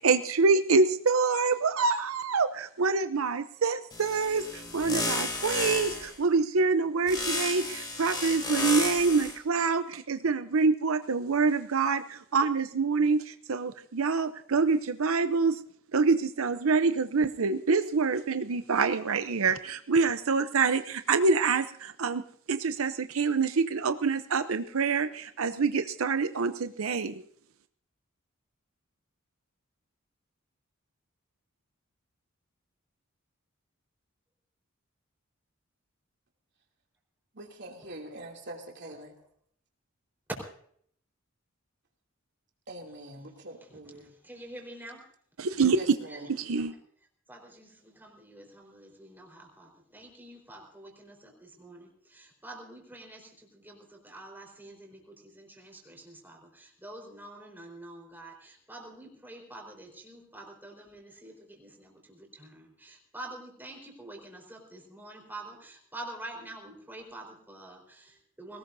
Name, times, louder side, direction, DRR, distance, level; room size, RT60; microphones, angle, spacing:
voice 1, 0.0-15.5 15.9-22.2 22.5-27.1 45.4-46.0 46.4-46.7, right 4 dB, 90° right, 0.7 m, -26 dB
sound 1, 3.9-6.1 7.1-9.4, left 2 dB, 20° left, 3.5 m, -32 dB
voice 2, 37.3-39.1 42.7-44.1 45.7-46.3, right 1 dB, 55° right, 2.8 m, -43 dB
voice 3, 42.9-43.3 43.6-45.1 46.1-46.3 46.6-46.7 47.3-68.6, right 1 dB, 10° right, 4.4 m, -47 dB
21.0 x 18.5 x 2.7 m
head